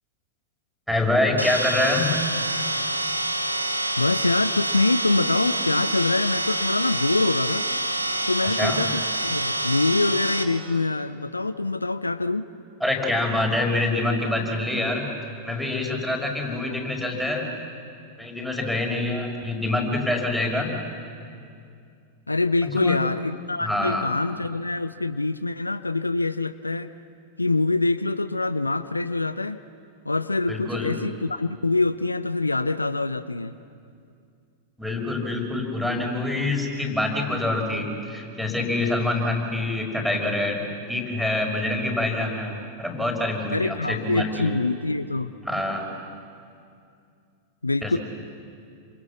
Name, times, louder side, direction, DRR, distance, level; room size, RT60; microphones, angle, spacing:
voice 1, 0.9-2.1 8.4-8.9 12.8-15.1 15.4-17.5 18.2-20.7 22.6-23.0 23.6-24.1 30.5-30.9 34.8-40.6 40.9-44.6 45.4-45.9 47.8-48.0, left 2 dB, ahead, 0 dB, 5.5 m, -26 dB
sound 1, 1.4-10.4, right 1 dB, 90° right, 1.5 m, -27 dB
voice 2, 4.0-7.7 8.3-12.5 22.3-26.9 27.4-29.6 30.0-33.5 43.5-45.3 47.6-48.0, left 3 dB, 80° left, 15 dB, 0.6 m, -25 dB
28.5 x 26.5 x 7.3 m, 2.4 s
figure-of-eight pair, 90°, 0 cm